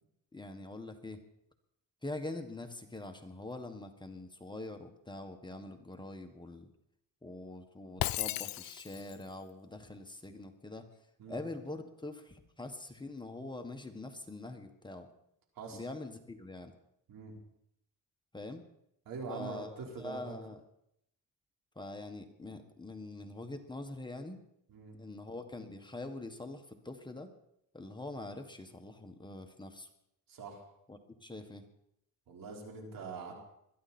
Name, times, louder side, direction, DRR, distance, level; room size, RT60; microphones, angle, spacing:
voice 1, 0.3-1.2 2.0-6.7 7.2-10.9 11.3-15.1 15.7-16.7 18.3-18.6 19.3-19.7 20.0-20.6 21.7-24.4 25.0-27.3 27.7-29.9 30.9-31.6, left 2 dB, 15° left, 5 dB, 1.6 m, -44 dB
Shatter, 8.0-9.2, left 16 dB, 85° left, 0.5 m, -35 dB
voice 2, 19.1-20.3 24.7-25.0 30.3-30.6 32.3-33.3, right 4 dB, 80° right, 0 dB, 4.5 m, -43 dB
21.5 x 13.5 x 4.4 m, 0.77 s
cardioid pair, 110°, 34 cm